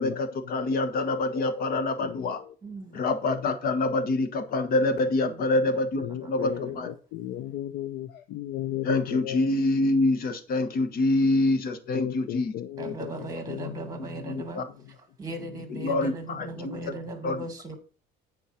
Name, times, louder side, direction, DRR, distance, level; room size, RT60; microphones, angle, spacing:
voice 1, 0.0-2.4 2.9-6.9 8.8-12.5 14.2-14.7 15.8-16.9 17.2-17.4, left 2 dB, 55° left, 1.5 m, -26 dB
voice 2, 0.9-2.3 6.0-9.5 11.9-13.8 14.3-14.5 15.7-15.9 16.7-16.8, left 12 dB, 80° left, 0.7 m, -35 dB
voice 3, 2.6-3.0 5.0-5.5 6.1-6.9 12.8-17.8, right 2 dB, 20° right, 2.6 m, -39 dB
8.6 x 4.6 x 5.9 m
cardioid pair, 110°, 18 cm